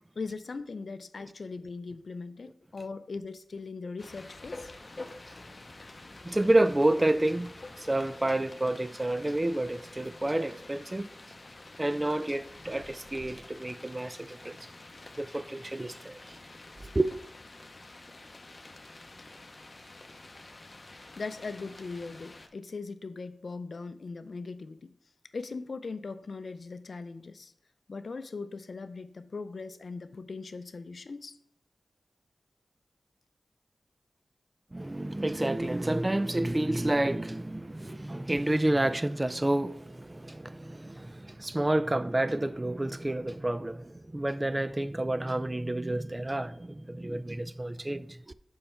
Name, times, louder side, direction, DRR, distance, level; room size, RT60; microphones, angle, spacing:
voice 1, 0.2-4.7 21.2-24.9 25.3-27.5 27.9-31.4, left 4 dB, 70° left, 0.4 m, -39 dB
sound 1, 4.0-22.5, left 2 dB, 45° left, 0.7 m, -48 dB
voice 2, 6.2-11.1 11.8-14.6 15.2-16.4 16.9-17.2 34.7-48.3, right 1 dB, 25° right, 0.4 m, -29 dB
5.5 x 5.5 x 4.3 m
cardioid pair, 40°, 0 cm